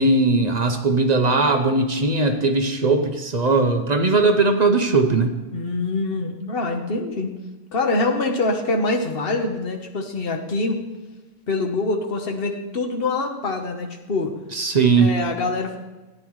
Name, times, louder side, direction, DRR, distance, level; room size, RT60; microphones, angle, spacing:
voice 1, 0.0-5.3 14.5-15.1, right 3 dB, 40° right, 5 dB, 0.8 m, -19 dB
voice 2, 5.5-7.3 7.7-10.8 11.5-14.4 15.0-15.8, left 3 dB, 55° left, 3 dB, 1.3 m, -24 dB
14.0 x 9.6 x 3.2 m, 1.1 s
omnidirectional pair, 1.2 m